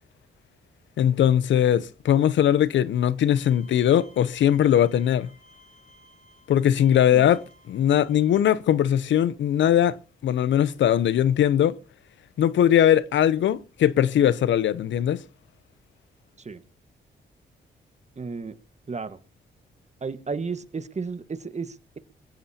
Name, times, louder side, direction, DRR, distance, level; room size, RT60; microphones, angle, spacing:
voice 1, 1.0-5.3 6.5-7.4 7.7-10.0 10.2-11.8 12.4-15.2, left 10 dB, 70° left, 0.7 m, -20 dB
Bowed string instrument, 3.4-8.4, left 1 dB, 45° left, 7.7 m, -56 dB
voice 2, 18.2-18.6 18.9-19.2 20.0-22.0, right 4 dB, 35° right, 1.5 m, -33 dB
22.0 x 15.5 x 2.8 m
supercardioid pair, 55°, 20 cm